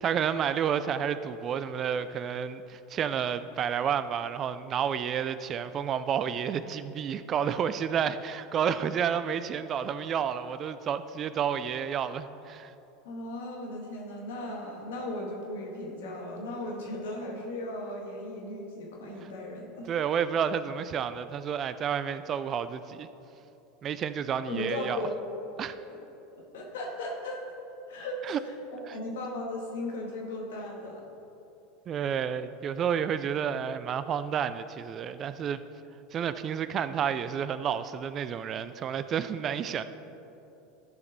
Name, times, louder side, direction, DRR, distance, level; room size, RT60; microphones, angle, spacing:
voice 1, 0.0-12.7 19.2-19.3 19.9-23.1 23.8-25.0 25.6-25.7 28.2-28.4 28.9-29.0 31.9-35.6 36.1-39.8, right 8 dB, 40° right, 13 dB, 0.4 m, -30 dB
voice 2, 13.1-19.9 24.5-25.1 25.9-26.0 26.3-27.4 27.9-31.0, left 1 dB, 75° left, -1 dB, 1.8 m, -37 dB
13.0 x 5.3 x 4.0 m, 2.9 s
hypercardioid pair, 85°, 0 cm